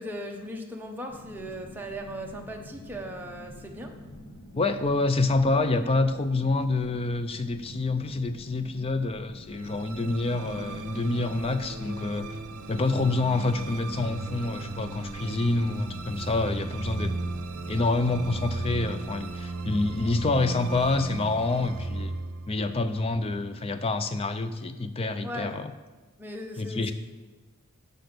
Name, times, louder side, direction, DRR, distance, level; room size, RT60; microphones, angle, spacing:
voice 1, 0.0-3.9 25.2-25.6 26.2-26.9, equal, 10° right, 1 dB, 0.7 m, -38 dB
sound 1, 1.1-19.1, left 1 dB, 85° left, 1.2 m, -47 dB
voice 2, 4.6-12.3 12.7-17.1 17.7-22.2 22.5-25.7 26.6-26.9, left 2 dB, 25° left, 11 dB, 0.4 m, -27 dB
sound 2, 9.5-23.9, right 2 dB, 75° right, 0.6 m, -36 dB
6.6 x 6.0 x 6.6 m, 1.2 s
head